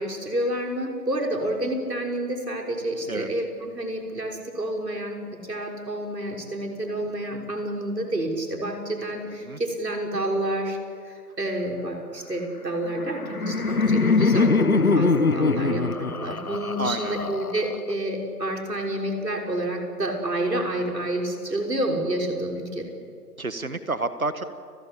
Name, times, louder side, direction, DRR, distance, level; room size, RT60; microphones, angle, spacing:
voice 1, 0.0-5.2 5.5-10.8 11.0-22.9, right 1 dB, 80° right, 1 dB, 6.4 m, -29 dB
voice 2, 9.3-9.6 16.8-17.2 23.4-24.4, right 3 dB, 60° right, 11 dB, 1.7 m, -29 dB
Laughter, 12.9-17.9, left 4 dB, 60° left, 1.3 m, -23 dB
29.5 x 21.5 x 8.6 m, 2.3 s
figure-of-eight pair, 180°, 48 cm